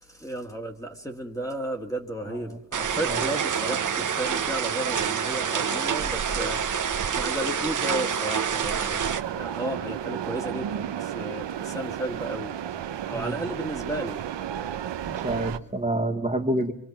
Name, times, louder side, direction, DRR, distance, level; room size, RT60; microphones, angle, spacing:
voice 1, 0.0-14.2, right 1 dB, 5° left, 2.0 m, -34 dB
sound 1, 2.7-9.2, right 7 dB, 45° right, 1.1 m, -27 dB
sound 2, 9.0-15.6, right 10 dB, 75° right, 1.0 m, -33 dB
voice 2, 15.0-16.7, right 1 dB, 15° right, 1.7 m, -27 dB
25.5 x 24.5 x 6.0 m
wide cardioid pair, 145°, 44 cm